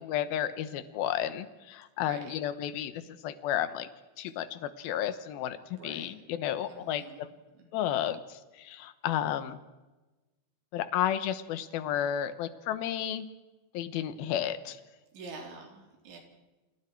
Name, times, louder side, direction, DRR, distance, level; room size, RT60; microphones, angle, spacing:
voice 1, 0.0-3.9 4.2-7.3 7.7-9.6 10.7-13.3 13.7-14.8, left 11 dB, 75° left, 12 dB, 2.3 m, -32 dB
voice 2, 2.0-2.4 5.7-6.1 6.7-7.2 7.7-7.9 15.1-16.2, right 3 dB, 70° right, 2 dB, 6.1 m, -46 dB
29.0 x 27.0 x 4.6 m, 1.1 s
omnidirectional pair, 5.6 m